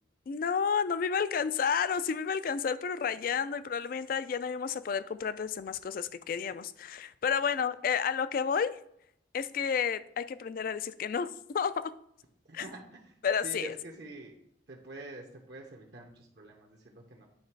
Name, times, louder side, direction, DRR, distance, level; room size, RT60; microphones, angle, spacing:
voice 1, 0.3-8.8 9.3-11.3 11.5-11.9 12.5-12.7 13.2-13.8, left 6 dB, 45° left, 0.3 m, -31 dB
voice 2, 12.5-12.8 13.4-14.3 14.7-17.3, right 2 dB, 60° right, 0.9 m, -45 dB
9.5 x 3.2 x 4.5 m
head